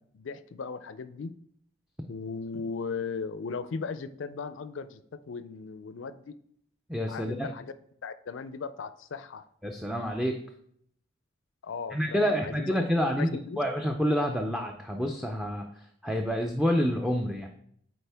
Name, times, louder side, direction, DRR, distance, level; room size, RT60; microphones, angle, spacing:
voice 1, 0.1-1.3 2.1-5.0 5.3-6.4 7.1-7.7 8.0-9.4 11.6-12.8 13.2-13.6, left 5 dB, 60° left, 13 dB, 0.4 m, -37 dB
voice 2, 6.9-7.5 9.6-10.3 11.9-15.7 16.0-17.5, equal, ahead, 2 dB, 0.4 m, -28 dB
8.6 x 4.3 x 3.4 m, 0.67 s
head